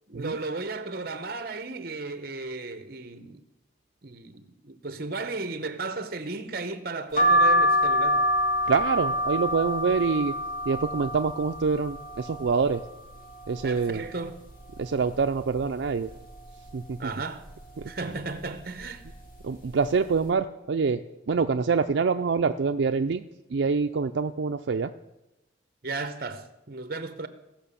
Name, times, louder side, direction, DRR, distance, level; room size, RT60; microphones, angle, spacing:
voice 1, 0.1-3.5 4.0-8.3 13.6-14.4 17.0-17.4 17.9-19.0 25.8-27.3, right 3 dB, 50° right, 0.9 m, -35 dB
sound 1, 7.2-12.8 13.3-14.1 14.5-14.6 14.7-15.9 16.3-16.7 17.5-17.8 18.6-18.8 19.1-19.3, equal, 45° left, 2.4 m, -26 dB
voice 2, 8.7-10.3 10.7-12.8 13.5-14.0 14.8-16.1 16.7-17.1 17.8-17.9 19.4-23.3 23.5-24.9, right 5 dB, 75° right, 0.4 m, -26 dB
16.0 x 5.9 x 7.0 m
head